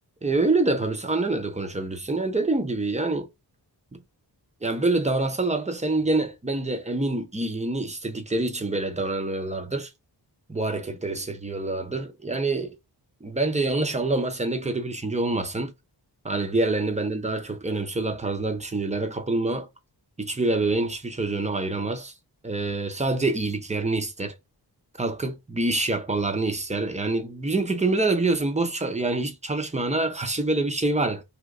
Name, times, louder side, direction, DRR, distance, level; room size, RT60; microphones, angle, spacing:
voice 1, 0.2-3.3 3.9-4.0 4.6-9.9 10.5-12.8 13.2-15.7 16.2-19.7 20.2-22.1 22.4-24.3 25.0-31.2, right 2 dB, 15° right, 0.5 m, -26 dB
3.1 x 2.8 x 2.4 m
wide cardioid pair, 120°, 43 cm